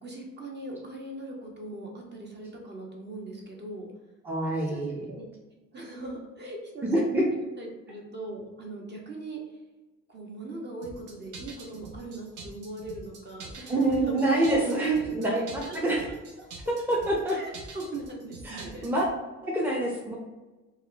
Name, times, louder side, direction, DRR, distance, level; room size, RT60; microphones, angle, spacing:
voice 1, 0.0-3.9 4.7-5.3 5.7-7.0 7.3-9.6 10.1-14.1 15.1-15.8 16.1-16.5 17.3-18.9, right 2 dB, 35° right, -1 dB, 0.9 m, -40 dB
voice 2, 4.2-5.0 6.8-7.2 13.7-16.0 16.7-17.4 18.5-19.1 19.4-20.1, right 1 dB, 5° right, -3 dB, 0.6 m, -26 dB
sound 1, 10.8-19.1, right 3 dB, 85° right, 0.7 m, -45 dB
2.9 x 2.2 x 3.8 m, 1.2 s
cardioid pair, 90°, 30 cm